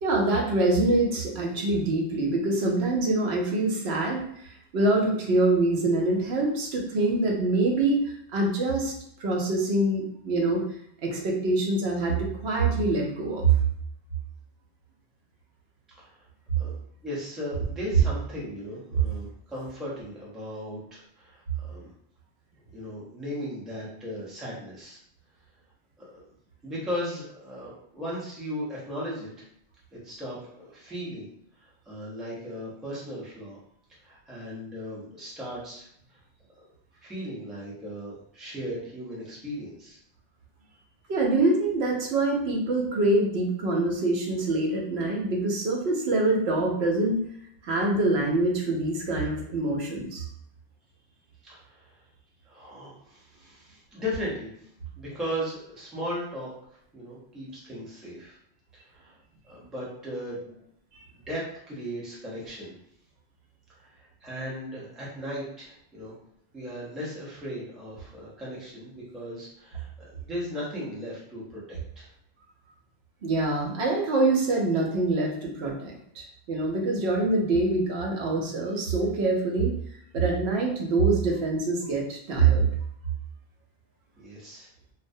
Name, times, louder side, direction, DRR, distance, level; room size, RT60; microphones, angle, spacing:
voice 1, 0.0-8.9 9.2-10.6 11.0-13.4 41.1-47.2 47.6-50.2 73.2-79.7 80.1-82.7, right 2 dB, 80° right, -1 dB, 0.9 m, -25 dB
voice 2, 17.0-21.9 22.7-25.0 26.0-26.2 26.6-29.3 29.9-31.3 31.6-33.6 34.0-36.2 37.0-40.0 51.4-52.0 52.4-54.7 55.0-56.5 56.9-58.4 58.7-59.2 59.4-60.6 61.1-62.7 63.8-66.1 66.5-72.1 84.2-84.7, equal, ahead, -6 dB, 0.5 m, -37 dB
2.3 x 2.1 x 2.6 m, 0.71 s
omnidirectional pair, 1.1 m